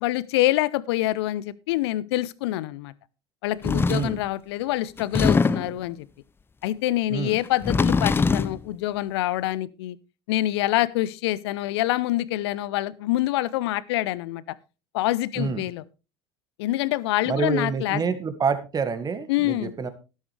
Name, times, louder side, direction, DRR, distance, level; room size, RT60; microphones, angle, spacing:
voice 1, 0.0-2.9 3.4-6.1 6.6-10.0 10.3-14.6 14.9-15.8 16.6-18.0 19.3-19.7, left 16 dB, 65° left, 21 dB, 0.7 m, -26 dB
sound 1, 3.6-4.2 5.0-5.8 7.5-8.6, left 4 dB, 15° left, 0.5 m, -22 dB
voice 2, 3.9-4.2 7.1-7.4 15.4-15.7 17.3-19.9, right 5 dB, 25° right, 11 dB, 1.8 m, -27 dB
12.0 x 12.0 x 3.3 m, 0.31 s
figure-of-eight pair, 75°, 15 cm